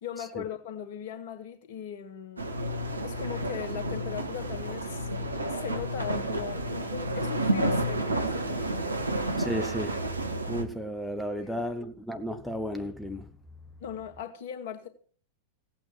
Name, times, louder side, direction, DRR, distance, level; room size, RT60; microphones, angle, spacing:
voice 1, 0.0-2.5 3.0-5.1 5.3-9.0 11.4-11.7 13.8-14.9, left 8 dB, 50° left, 2.2 m, -39 dB
sound 1, 2.4-10.6, right 1 dB, 80° right, 1.7 m, -30 dB
voice 2, 9.4-10.0 10.5-13.3, equal, ahead, 1.2 m, -33 dB
16.5 x 9.0 x 6.1 m
figure-of-eight pair, 90°, 0 cm